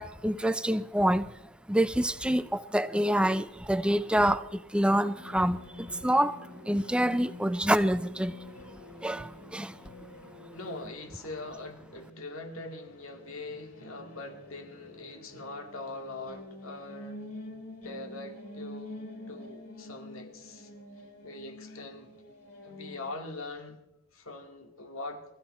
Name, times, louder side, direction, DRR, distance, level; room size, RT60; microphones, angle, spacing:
voice 1, 0.0-1.4 1.7-6.4 6.6-8.4 9.0-9.8, right 1 dB, 5° right, 0.5 m, -27 dB
sound 1, 5.1-23.1, left 1 dB, 85° left, 7.5 m, -47 dB
voice 2, 10.5-17.2 17.8-20.7 21.2-22.1 22.6-23.9 24.1-25.2, left 2 dB, 65° left, 2.3 m, -42 dB
22.0 x 13.5 x 4.4 m
head